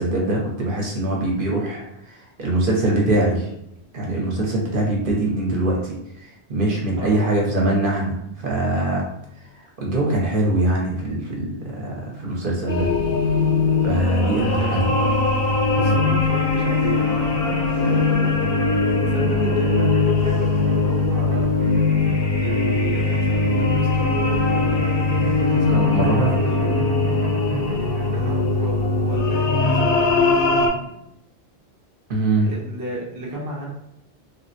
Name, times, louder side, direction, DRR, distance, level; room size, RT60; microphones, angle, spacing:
voice 1, 0.0-3.5 3.9-9.0 9.8-12.9 13.8-14.8 15.8-15.9 25.7-26.3 32.1-32.5, right 1 dB, 55° right, -2 dB, 0.8 m, -23 dB
voice 2, 7.0-7.3 14.2-15.1 15.8-18.3 19.0-21.5 22.4-26.7 28.1-31.0 32.4-33.7, right 2 dB, 25° right, -4 dB, 0.5 m, -32 dB
sound 1, 12.7-30.7, left 3 dB, 65° left, 0.7 m, -20 dB
sound 2, 16.4-28.4, right 4 dB, 80° right, 0.9 m, -36 dB
3.2 x 2.1 x 2.6 m, 0.80 s
omnidirectional pair, 1.1 m